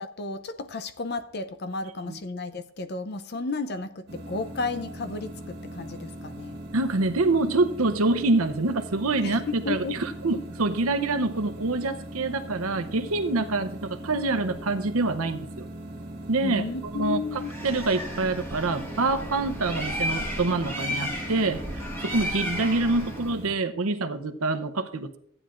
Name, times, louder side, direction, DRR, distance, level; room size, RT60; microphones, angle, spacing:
voice 1, 0.0-6.6 9.2-10.0 16.4-17.5, left 3 dB, 45° left, 0.6 m, -33 dB
sound 1, 4.1-23.5, right 1 dB, 45° right, 1.4 m, -40 dB
voice 2, 6.7-15.7 16.3-25.2, right 3 dB, 75° right, 0.8 m, -26 dB
Bird, 17.3-23.4, equal, 10° left, 1.8 m, -34 dB
14.5 x 9.8 x 2.5 m
head